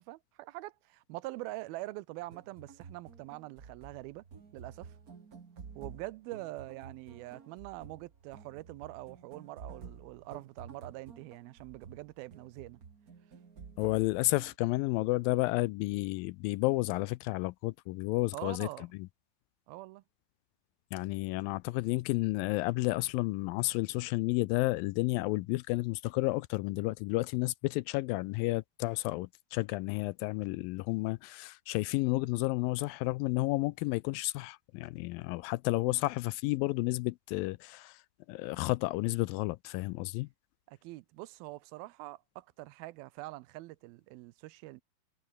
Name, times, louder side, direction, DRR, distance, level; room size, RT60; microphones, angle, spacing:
voice 1, 0.0-4.3 4.5-4.9 5.8-12.8 18.3-18.9 19.7-20.0 40.7-44.8, right 19 dB, 85° right, 2.5 m, -44 dB
sound 1, 2.2-14.5, right 6 dB, 40° right, 1.2 m, -51 dB
voice 2, 13.8-19.1 20.9-38.0 38.3-40.3, left 21 dB, 80° left, 2.1 m, -31 dB
omnidirectional pair, 4.3 m